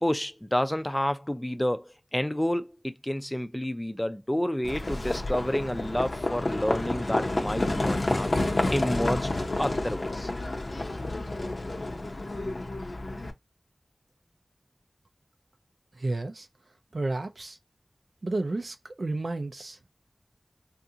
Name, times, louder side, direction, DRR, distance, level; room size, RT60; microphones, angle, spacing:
voice 1, 0.0-8.3 8.7-9.3 9.6-10.3, left 1 dB, 15° left, 0.4 m, -29 dB
Livestock farm animals working animals, 4.6-13.3, left 2 dB, 75° left, 0.6 m, -29 dB
voice 2, 15.9-16.5 16.9-17.6 18.2-19.9, right 2 dB, 75° right, 0.4 m, -32 dB
3.6 x 2.4 x 2.7 m
wide cardioid pair, 50°, 0 cm